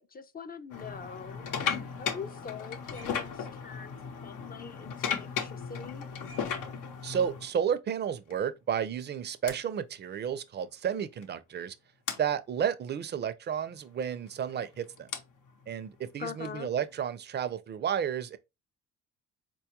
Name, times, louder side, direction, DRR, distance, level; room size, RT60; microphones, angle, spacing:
voice 1, 0.0-1.4 2.0-6.0 16.2-16.7, left 6 dB, 30° left, 0.4 m, -43 dB
sound 1, 0.7-7.5 8.3-8.5 9.5-9.6 10.9-11.0 11.2-11.4 12.1-12.2 14.0-17.1, left 7 dB, 85° left, 0.7 m, -36 dB
voice 2, 7.0-11.8 12.2-15.1 15.7-18.4, right 8 dB, 35° right, 0.4 m, -32 dB
4.2 x 2.3 x 2.8 m
cardioid pair, 90°, 30 cm